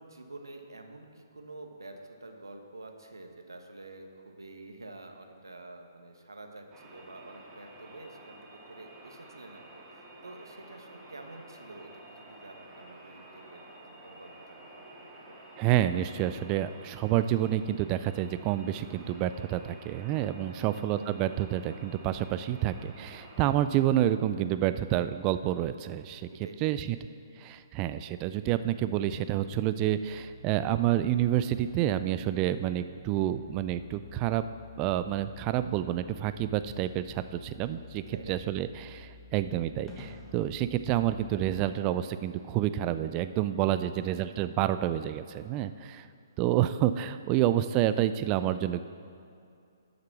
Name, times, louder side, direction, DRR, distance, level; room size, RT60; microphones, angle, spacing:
voice 1, 0.0-15.4 20.5-20.8 26.3-26.8 38.1-38.6 43.8-44.1, right 2 dB, 90° right, 4 dB, 1.3 m, -48 dB
sound 1, 6.7-23.4, right 1 dB, 10° right, 2.4 m, -51 dB
voice 2, 15.6-26.3 26.6-27.0 27.4-34.4 34.8-38.0 38.3-46.0 46.4-48.8, right 12 dB, 25° right, 12 dB, 0.4 m, -28 dB
sound 2, 30.0-41.7, left 4 dB, 10° left, 1.6 m, -50 dB
11.5 x 6.7 x 6.1 m, 2.5 s
figure-of-eight pair, 135°, 2 cm